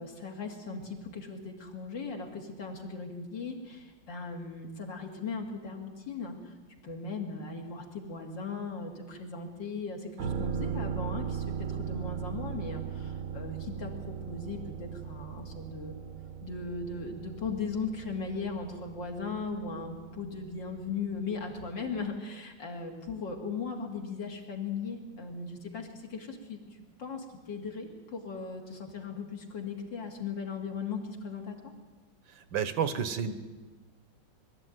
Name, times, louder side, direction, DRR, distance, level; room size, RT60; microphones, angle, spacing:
voice 1, 0.0-6.5 6.8-16.0 16.4-26.6 27.0-31.6, left 4 dB, 65° left, 2 dB, 3.2 m, -38 dB
sound 1, 10.2-21.8 22.1-22.2, right 7 dB, 55° right, 1.2 m, -38 dB
voice 2, 32.5-33.3, right 7 dB, 75° right, 12 dB, 1.8 m, -30 dB
21.5 x 13.0 x 9.3 m, 1.3 s
omnidirectional pair, 2.1 m